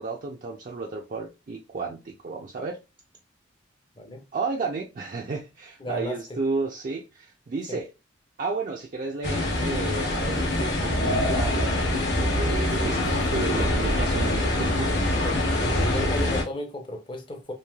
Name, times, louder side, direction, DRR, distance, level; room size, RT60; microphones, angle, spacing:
voice 1, 0.0-2.8 4.3-7.9 8.4-14.9, right 4 dB, 45° right, 0.4 m, -32 dB
voice 2, 5.8-6.4 7.7-7.8 12.8-13.4 15.2-17.5, left 1 dB, 25° left, 0.5 m, -35 dB
sound 1, 9.2-16.4, left 1 dB, 60° left, 0.9 m, -24 dB
3.1 x 2.6 x 2.2 m
head